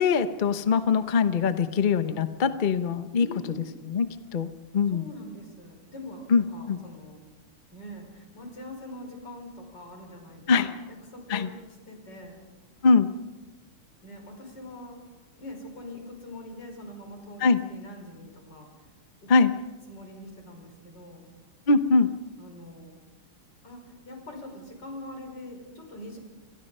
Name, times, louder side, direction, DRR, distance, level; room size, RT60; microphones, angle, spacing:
voice 1, 0.0-3.3 3.9-4.1 4.3-5.0 6.3-6.8 10.5-10.7 11.3-11.5 12.8-13.1 17.4-17.6 19.3-19.5 21.7-22.1, left 4 dB, 70° left, 11 dB, 0.4 m, -22 dB
voice 2, 3.2-3.7 4.9-7.2 7.7-10.8 11.1-11.6 11.9-12.4 14.0-15.0 15.4-18.7 19.2-19.3 19.9-21.3 22.4-23.0 23.6-26.2, left 1 dB, 50° left, 3 dB, 5.8 m, -43 dB
28.5 x 23.5 x 5.5 m, 1.2 s
omnidirectional pair, 2.4 m